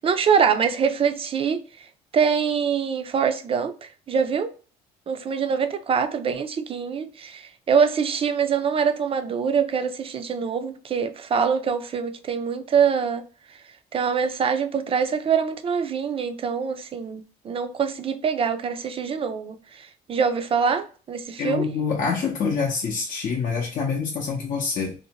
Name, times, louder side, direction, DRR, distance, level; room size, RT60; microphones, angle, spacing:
voice 1, 0.0-1.6 2.1-4.5 5.1-13.2 13.9-21.7, right 6 dB, 35° right, 0.4 m, -24 dB
voice 2, 21.4-24.9, left 5 dB, 50° left, 0.6 m, -26 dB
2.6 x 2.1 x 2.7 m
cardioid pair, 110°, 17 cm